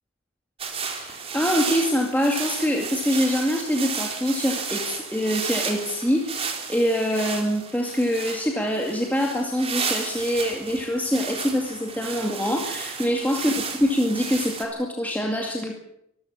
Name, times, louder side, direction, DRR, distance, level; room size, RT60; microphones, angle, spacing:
sound 1, 0.6-14.6, right 5 dB, 30° right, 3.6 m, -33 dB
voice 1, 0.9-15.8, equal, 10° left, 1 dB, 2.2 m, -25 dB
24.5 x 14.0 x 8.7 m, 0.76 s
head